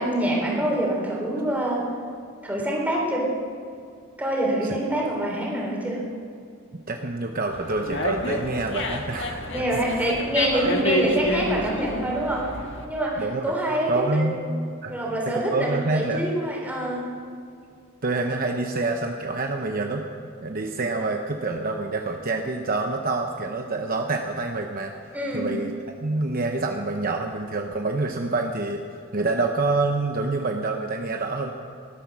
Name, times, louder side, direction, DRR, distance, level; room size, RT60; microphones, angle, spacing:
voice 1, 0.0-1.8 2.4-3.3 4.2-6.0 9.5-12.5 12.8-14.5 14.9-17.0 25.1-25.5, right 1 dB, 5° right, -3 dB, 3.5 m, -26 dB
voice 2, 6.9-9.4 9.9-10.1 10.5-10.9 13.2-13.4 13.9-14.4 14.8-15.0 15.3-16.2 18.0-20.1 20.4-24.9 25.3-28.8 29.1-31.5, right 3 dB, 40° right, 3 dB, 0.8 m, -27 dB
Dog, 7.5-12.9, left 1 dB, 60° left, 1.5 m, -29 dB
19.0 x 12.5 x 6.1 m, 2.4 s
head